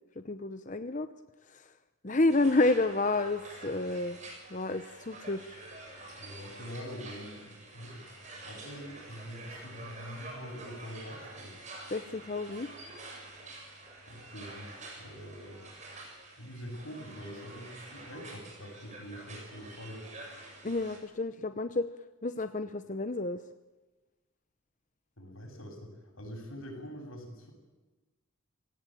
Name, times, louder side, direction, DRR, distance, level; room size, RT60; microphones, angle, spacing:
voice 1, 0.2-1.1 1.5-1.7 2.0-4.2 4.5-5.6 11.9-12.7 20.6-21.9 22.2-23.4, left 2 dB, 35° left, 10 dB, 0.8 m, -30 dB
sound 1, 2.3-21.0, right 2 dB, 35° right, 7.4 m, -48 dB
voice 2, 6.1-8.0 8.4-11.5 14.1-15.6 16.4-20.0 25.2-25.9 26.2-27.5, equal, 85° left, 3 dB, 7.8 m, -44 dB
30.0 x 18.0 x 9.2 m, 1.2 s
head